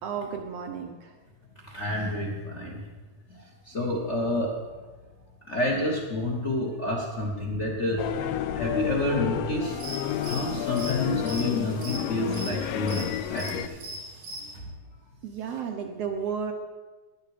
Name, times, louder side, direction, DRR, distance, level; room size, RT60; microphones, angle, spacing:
voice 1, 0.0-1.1 15.2-16.5, right 7 dB, 70° right, 4 dB, 1.6 m, -33 dB
voice 2, 1.6-2.8 3.3-4.5 5.5-9.8 10.2-13.8, left 1 dB, 40° left, 0 dB, 1.0 m, -29 dB
sound 1, 8.0-13.7, left 11 dB, 85° left, 1.4 m, -31 dB
sound 2, 9.6-14.6, right 1 dB, 85° right, 3.7 m, -40 dB
11.5 x 10.5 x 4.9 m, 1.3 s
omnidirectional pair, 3.5 m